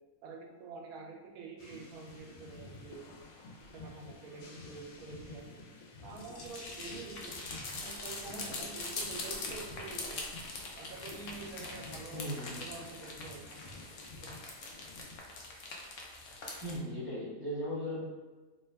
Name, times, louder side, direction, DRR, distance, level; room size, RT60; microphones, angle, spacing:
voice 1, 0.2-3.0 3.7-5.6 6.0-7.3 7.8-10.2 10.8-13.7 14.1-14.3 16.9-17.0, right 4 dB, 85° right, 1 dB, 1.0 m, -47 dB
sound 1, 1.6-15.2, left 2 dB, 80° left, 1.1 m, -51 dB
sound 2, 6.1-16.8, left 3 dB, 65° left, 0.6 m, -43 dB
voice 2, 12.1-12.5 16.6-18.0, equal, 25° right, -10 dB, 1.2 m, -37 dB
2.7 x 2.2 x 3.3 m, 1.3 s
omnidirectional pair, 1.5 m